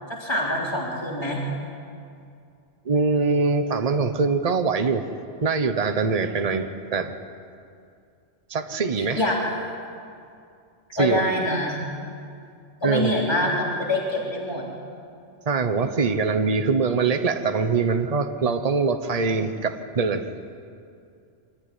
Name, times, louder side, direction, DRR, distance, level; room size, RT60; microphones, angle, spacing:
voice 1, 0.1-1.4 9.2-9.3 11.0-11.8 12.8-14.7, left 1 dB, 20° left, -3 dB, 3.5 m, -25 dB
voice 2, 2.8-5.1 5.4-7.1 8.5-9.2 11.0-11.2 12.8-13.2 15.5-20.3, right 4 dB, 35° right, 8 dB, 1.1 m, -23 dB
25.0 x 14.0 x 9.8 m, 2.4 s
omnidirectional pair, 1.2 m